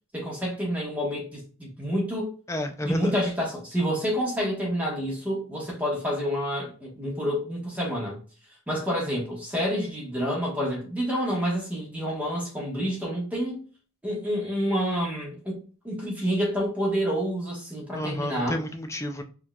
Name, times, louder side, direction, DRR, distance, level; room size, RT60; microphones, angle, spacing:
voice 1, 0.1-2.3 2.8-8.2 8.7-13.6 14.0-18.6, equal, 5° right, 1.2 m, -28 dB
voice 2, 2.5-3.2 17.9-19.2, left 1 dB, 15° left, 0.3 m, -31 dB
4.6 x 2.7 x 2.3 m
head